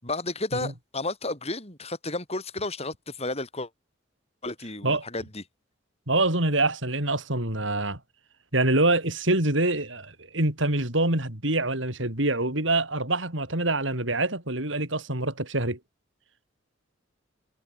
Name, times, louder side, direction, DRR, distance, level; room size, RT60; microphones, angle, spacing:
voice 1, 0.0-3.7 4.4-5.4, left 2 dB, 35° left, 8.0 m, -32 dB
voice 2, 6.1-8.0 8.5-15.8, right 2 dB, 75° right, 5.8 m, -25 dB
head